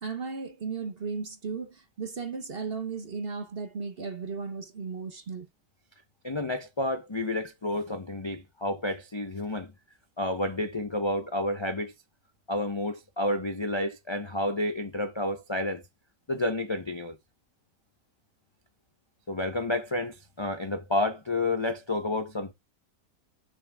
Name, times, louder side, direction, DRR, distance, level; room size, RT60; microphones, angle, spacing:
voice 1, 0.0-5.5, right 5 dB, 45° right, 0.9 m, -35 dB
voice 2, 6.2-9.7 10.2-11.9 12.5-15.8 16.3-17.2 19.3-22.5, left 1 dB, 35° left, 0.4 m, -30 dB
6.5 x 3.6 x 4.5 m
omnidirectional pair, 1.8 m